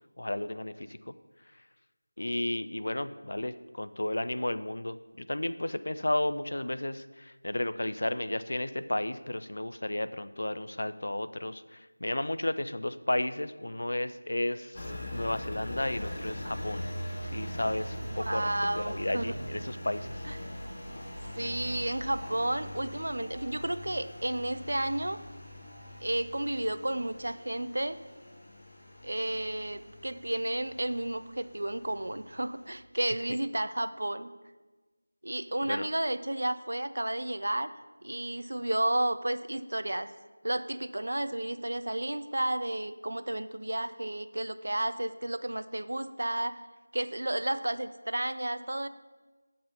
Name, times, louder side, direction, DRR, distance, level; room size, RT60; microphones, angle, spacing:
voice 1, 0.2-1.1 2.2-14.9 15.1-16.9 17.3-18.5 18.8-20.2 35.7-35.9, left 1 dB, 60° left, 12 dB, 0.4 m, -33 dB
Engine, 14.7-32.7, equal, 25° left, 1.6 m, -42 dB
voice 2, 18.2-19.3 20.2-20.4 21.4-25.2 26.0-28.0 29.0-34.3 35.2-37.7 38.0-40.1 40.4-46.6 46.9-48.9, right 1 dB, 65° right, 12 dB, 0.5 m, -32 dB
8.3 x 6.2 x 4.0 m, 1.2 s
figure-of-eight pair, 170°, 0 cm